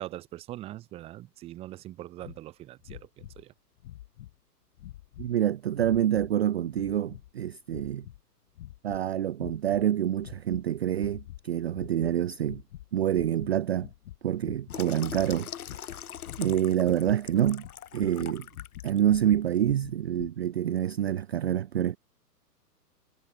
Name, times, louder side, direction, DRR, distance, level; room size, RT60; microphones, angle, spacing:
voice 1, 0.0-3.5, right 15 dB, 10° right, 0.8 m, -42 dB
sound 1, 2.2-2.4 2.8-3.4 3.8-4.4 4.8-5.3 5.7-6.3 6.7-7.3 7.7-8.2 8.6-9.0 9.4-9.9 10.2-10.6 11.0-11.4 11.7-12.1 12.4-12.9 13.1-20.3, left 14 dB, 45° left, 3.6 m, -45 dB
voice 2, 5.2-8.0 8.8-12.6 12.9-13.9 14.2-15.5 16.4-17.7 17.9-18.5 18.8-22.0, right 10 dB, 45° right, 0.4 m, -27 dB
Water tap faucet / Sink (filling or washing), 14.7-19.0 19.5-19.7, left 9 dB, 60° left, 3.8 m, -42 dB
hypercardioid pair, 130°, 49 cm